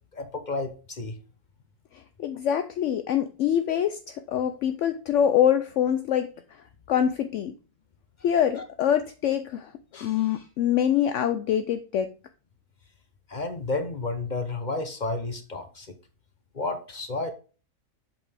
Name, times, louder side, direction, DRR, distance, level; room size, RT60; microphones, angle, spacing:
voice 1, 0.1-1.2 8.4-8.5 13.3-15.9 16.5-17.3, left 3 dB, 40° left, 0.8 m, -31 dB
voice 2, 1.9-7.5 8.2-12.2, left 9 dB, 70° left, 0.8 m, -25 dB
7.4 x 5.4 x 3.4 m
omnidirectional pair, 1.4 m